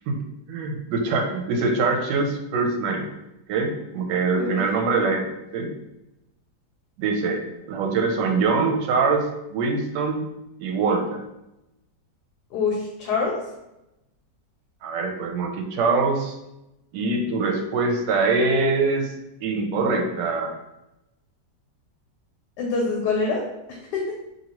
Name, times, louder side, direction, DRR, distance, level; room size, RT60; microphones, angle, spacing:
voice 1, 0.5-3.1 3.5-5.7 7.0-10.3 10.6-11.2 14.8-16.4 16.9-19.1 19.4-20.6, right 3 dB, 85° right, 3 dB, 1.2 m, -24 dB
voice 2, 12.5-13.4 22.6-23.4 23.7-24.1, left 4 dB, 75° left, -1 dB, 1.1 m, -25 dB
2.9 x 2.6 x 2.9 m, 0.90 s
omnidirectional pair, 1.8 m